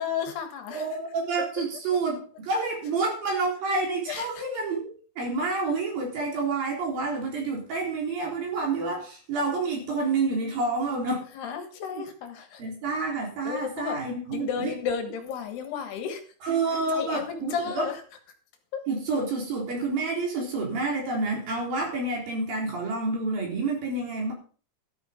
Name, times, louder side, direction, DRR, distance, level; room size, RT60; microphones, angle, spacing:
voice 1, 0.0-0.9 4.1-4.4 11.3-12.6 13.5-14.0 14.3-16.2 16.7-18.0, left 7 dB, 70° left, 6 dB, 3.5 m, -33 dB
voice 2, 0.7-11.3 11.9-12.0 12.6-14.7 16.4-17.9 18.9-24.3, right 3 dB, 55° right, 0 dB, 5.4 m, -28 dB
13.0 x 9.4 x 5.3 m, 0.40 s
omnidirectional pair, 5.2 m